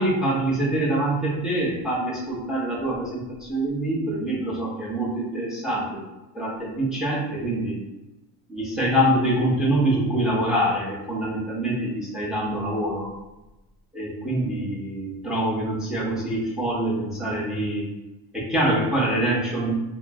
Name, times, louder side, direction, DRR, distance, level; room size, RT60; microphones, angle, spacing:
voice 1, 0.0-6.0 6.3-7.8 8.5-13.1 13.9-17.9 18.3-19.7, right 1 dB, ahead, -5 dB, 0.7 m, -25 dB
2.3 x 2.0 x 3.5 m, 0.99 s
supercardioid pair, 105°, 46 cm